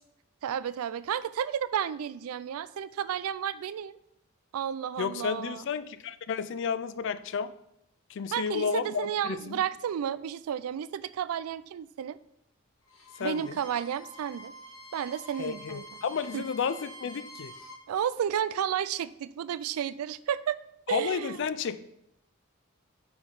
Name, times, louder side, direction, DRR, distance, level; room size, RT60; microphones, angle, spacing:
voice 1, 0.4-4.0 4.5-5.6 8.3-12.2 13.2-14.5 14.9-15.8 16.3-16.5 17.9-20.6 20.9-21.5, right 9 dB, 90° right, 16 dB, 0.3 m, -32 dB
voice 2, 5.0-7.5 8.1-9.6 13.2-13.6 15.4-17.5 20.9-21.8, left 6 dB, 60° left, 13 dB, 0.4 m, -32 dB
Bowed string instrument, 12.8-17.8, right 1 dB, 75° left, 1.5 m, -47 dB
5.8 x 4.3 x 4.8 m, 0.80 s
head